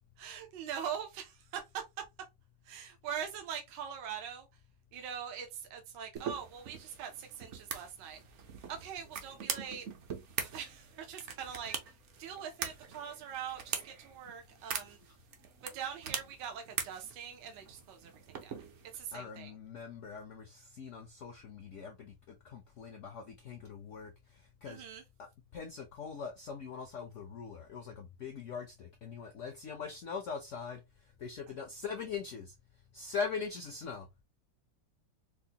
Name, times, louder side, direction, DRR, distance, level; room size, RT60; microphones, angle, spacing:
voice 1, 0.2-1.8 2.6-4.5 4.9-8.2 8.7-9.9 10.4-11.7 12.2-15.0 15.6-18.5 18.9-19.5 24.7-25.0, right 8 dB, 75° right, 1.3 m, -42 dB
sound 1, 6.2-19.0, right 7 dB, 60° right, 0.7 m, -43 dB
voice 2, 19.1-24.1 24.6-24.8 25.2-25.3 25.5-30.8 31.2-32.5 32.9-34.1, left 5 dB, 70° left, 0.7 m, -41 dB
4.6 x 2.1 x 2.7 m
omnidirectional pair, 1.9 m